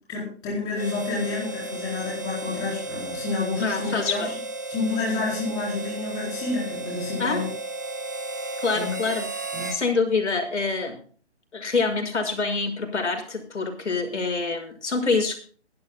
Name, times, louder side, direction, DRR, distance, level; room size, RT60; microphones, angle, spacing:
voice 1, 0.1-4.3 4.7-7.5 8.7-9.2 9.5-9.7, left 3 dB, 10° left, -5 dB, 4.3 m, -29 dB
Harmonica, 0.7-9.8, right 2 dB, 15° right, 0.7 m, -34 dB
voice 2, 3.6-4.3 7.2-7.4 8.6-9.2 9.7-11.0 11.5-15.4, left 4 dB, 85° left, 4 dB, 6.1 m, -26 dB
23.0 x 12.0 x 2.2 m, 0.43 s
hypercardioid pair, 175°, 34 cm